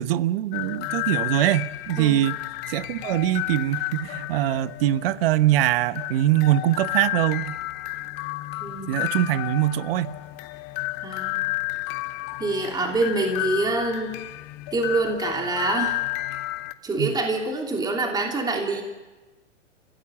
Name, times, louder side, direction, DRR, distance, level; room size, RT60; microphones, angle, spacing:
voice 1, 0.0-2.4 2.7-7.6 8.9-10.2 17.0-17.1, right 13 dB, 50° right, 15 dB, 1.0 m, -23 dB
sound 1, 0.5-16.7, left 18 dB, 30° left, 0.9 m, -32 dB
voice 2, 8.6-9.0 11.0-11.4 12.4-14.1 14.7-16.0 16.8-18.8, right 2 dB, 10° right, 1 dB, 3.0 m, -26 dB
29.5 x 16.0 x 7.3 m, 1.1 s
hypercardioid pair, 135°, 37 cm